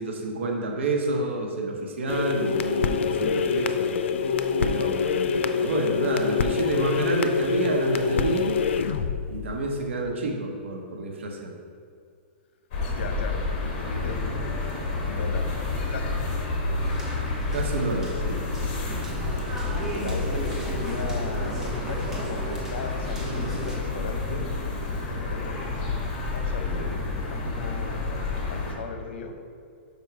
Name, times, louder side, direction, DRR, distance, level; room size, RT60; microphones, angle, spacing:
voice 1, 0.0-3.9 4.6-8.6 9.3-11.5 17.5-18.4, right 2 dB, 90° right, 1 dB, 1.1 m, -29 dB
sound 1, 2.1-10.0, left 5 dB, 85° left, 0.5 m, -26 dB
sound 2, 12.7-28.7, left 3 dB, 40° left, 1.6 m, -29 dB
voice 2, 13.0-14.5 15.0-15.5 15.9-16.2 17.9-18.1 18.8-18.9 20.0-25.6 26.3-28.2 28.5-29.4, left 4 dB, 70° left, 6 dB, 0.9 m, -37 dB
sound 3, 16.9-23.8, right 1 dB, 10° right, 1.0 m, -37 dB
6.0 x 5.4 x 4.7 m, 2.3 s
hypercardioid pair, 160°, 6 cm